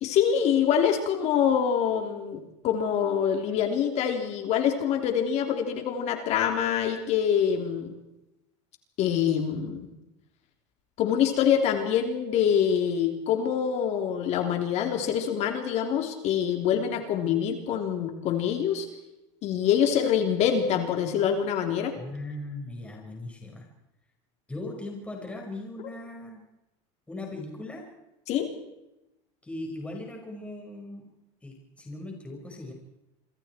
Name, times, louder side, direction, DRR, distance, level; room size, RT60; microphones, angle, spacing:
voice 1, 0.0-8.0 9.0-9.9 11.0-18.9 19.4-22.0 28.3-28.5, left 8 dB, 45° left, 5 dB, 3.6 m, -25 dB
voice 2, 22.0-23.7 24.5-26.4 27.1-27.8 29.4-31.1 31.4-32.7, left 2 dB, 10° left, 0 dB, 5.4 m, -38 dB
27.0 x 25.5 x 4.6 m, 0.93 s
supercardioid pair, 130°, 15 cm